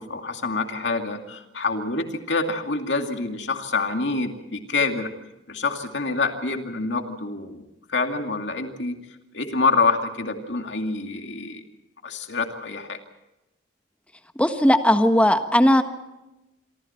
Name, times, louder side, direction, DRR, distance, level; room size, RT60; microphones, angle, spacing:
voice 1, 0.0-5.1 5.5-9.0 9.3-11.6 12.0-13.0, left 3 dB, 75° left, 4 dB, 2.5 m, -26 dB
voice 2, 14.4-15.8, left 1 dB, 5° left, 7 dB, 1.4 m, -17 dB
27.0 x 24.5 x 4.5 m, 0.98 s
head